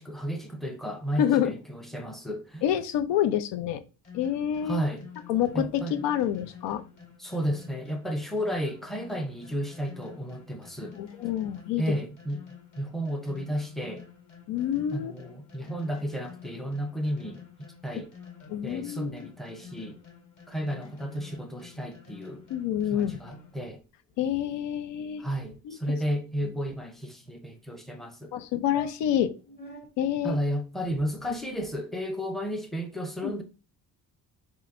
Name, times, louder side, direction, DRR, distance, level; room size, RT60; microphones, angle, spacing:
voice 1, 0.0-2.6 4.6-5.0 5.5-6.0 7.2-11.0 11.8-12.4 12.8-14.0 14.9-18.1 18.6-20.0 20.5-22.4 22.9-23.8 25.2-28.3 30.2-33.4, equal, ahead, 0.5 m, -33 dB
voice 2, 1.2-1.5 2.6-3.8 4.1-4.8 5.3-6.8 10.9-11.8 14.5-15.1 18.5-19.3 22.5-23.2 24.2-25.2 25.6-25.8 28.3-29.3 30.0-30.4 33.2-33.4, left 10 dB, 90° left, 0.7 m, -27 dB
sound 1, 4.0-23.7, left 7 dB, 45° left, 2.3 m, -49 dB
sound 2, 23.0-23.8 24.1-24.3 24.6-24.8 25.0-25.1 25.3-25.6 26.2-27.3 27.9-28.0 28.4-28.5 28.7-29.9 30.7-31.7, left 1 dB, 25° left, 1.0 m, -50 dB
3.9 x 3.1 x 4.3 m
cardioid pair, 160°, 41 cm